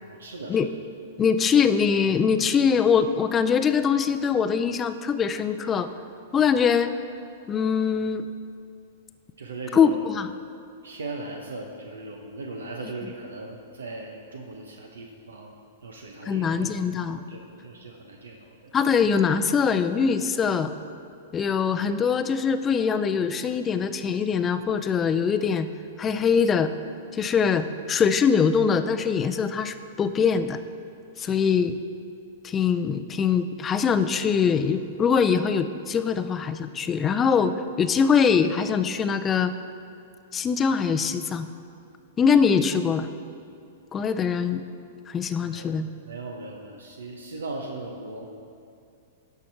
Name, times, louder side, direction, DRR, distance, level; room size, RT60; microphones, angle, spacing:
voice 1, 0.0-0.7 9.4-10.1 10.8-15.5 15.8-16.8 17.3-18.7 31.2-31.5 45.4-45.7 46.0-48.3, right 2 dB, 90° right, 2 dB, 0.8 m, -38 dB
voice 2, 1.2-5.9 6.3-7.0 7.5-8.3 9.7-10.3 16.2-17.2 18.7-20.7 21.3-25.7 26.0-26.7 27.1-30.6 31.2-31.8 32.4-39.5 40.3-41.5 42.2-43.1 43.9-44.6 45.1-45.9, left 6 dB, 20° left, 10 dB, 0.4 m, -23 dB
11.0 x 5.8 x 4.5 m, 2.4 s
hypercardioid pair, 120°, 0 cm